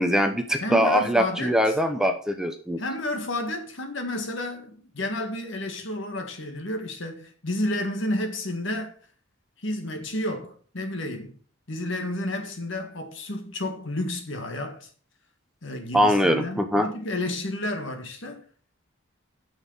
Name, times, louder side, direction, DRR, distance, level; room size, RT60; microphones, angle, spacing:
voice 1, 0.0-2.8 15.9-16.9, equal, 5° right, 0.8 m, -22 dB
voice 2, 0.6-1.8 2.8-8.9 9.6-11.3 11.7-14.9 15.6-18.4, left 1 dB, 60° left, 1.8 m, -31 dB
8.9 x 6.4 x 5.5 m
head